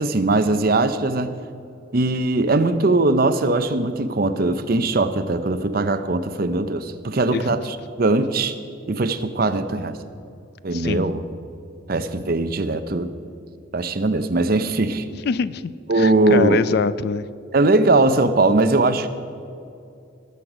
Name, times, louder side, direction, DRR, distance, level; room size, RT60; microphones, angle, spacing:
voice 1, 0.0-1.4 1.9-8.5 8.9-10.0 10.6-11.3 11.9-13.1 13.7-15.0 15.9-16.6 17.5-19.1, right 2 dB, 45° right, 10 dB, 0.6 m, -20 dB
voice 2, 15.2-17.3, left 5 dB, 50° left, 16 dB, 0.3 m, -24 dB
18.5 x 7.9 x 5.0 m, 2.5 s
head